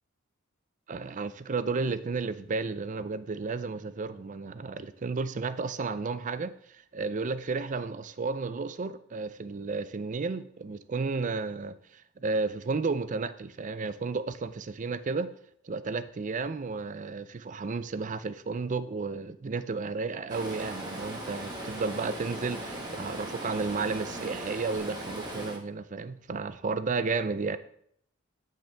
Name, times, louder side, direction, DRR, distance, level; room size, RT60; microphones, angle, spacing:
voice 1, 0.9-15.3 15.6-27.6, right 4 dB, 40° right, 13 dB, 0.5 m, -33 dB
Stream, 20.3-25.6, right 1 dB, 20° right, 1.6 m, -38 dB
10.0 x 5.7 x 3.5 m, 0.67 s
head